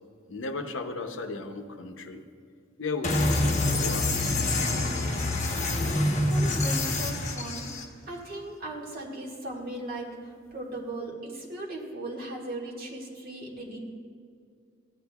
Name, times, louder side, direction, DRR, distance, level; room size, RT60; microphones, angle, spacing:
voice 1, 0.3-2.2 2.8-4.2, left 3 dB, 70° left, 6 dB, 0.7 m, -35 dB
sound 1, 3.0-7.8, left 2 dB, 40° left, 1.0 m, -26 dB
voice 2, 6.3-7.7 8.1-13.8, right 2 dB, 50° right, -3 dB, 1.8 m, -38 dB
15.0 x 9.8 x 2.3 m, 2.2 s
head